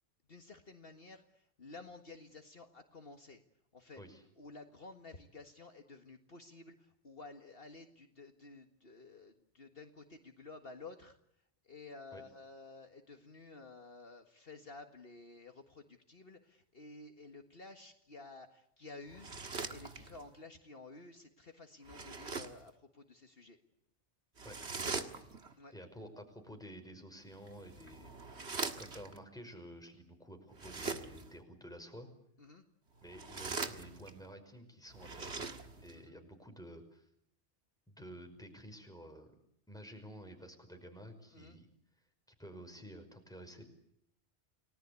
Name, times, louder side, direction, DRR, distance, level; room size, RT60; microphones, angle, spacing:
voice 1, 0.3-3.4 3.7-4.0 4.4-11.2 11.6-19.3 19.7-23.6 25.6-25.7 32.4-32.7 35.9-36.2 41.3-41.6, left 3 dB, 55° left, 5 dB, 2.0 m, -53 dB
sound 1, 19.1-20.3 21.8-22.7 24.4-25.5 27.3-29.2 30.5-31.4 33.0-34.3 34.9-36.0, right 4 dB, 70° right, 2.1 m, -42 dB
voice 2, 24.4-25.2 25.7-32.1 33.0-37.0 37.9-39.3 39.7-41.7 42.4-43.6, equal, 5° left, 5 dB, 5.4 m, -51 dB
30.0 x 19.5 x 8.4 m, 0.73 s
omnidirectional pair, 1.2 m